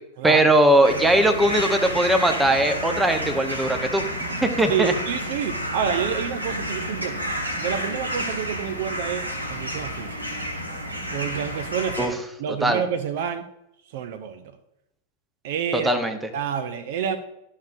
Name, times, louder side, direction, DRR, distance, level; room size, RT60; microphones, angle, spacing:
voice 1, 0.2-4.0 4.4-4.9 12.0-12.2 12.6-12.8 15.7-16.2, right 1 dB, 5° right, 0.9 m, -20 dB
sound 1, 0.8-12.1, equal, 85° right, 1.5 m, -30 dB
voice 2, 4.7-10.4 11.1-13.5 13.9-14.4 15.4-16.0 16.3-17.2, right 8 dB, 50° right, 0.6 m, -28 dB
11.5 x 6.4 x 2.6 m
figure-of-eight pair, 90°, 0 cm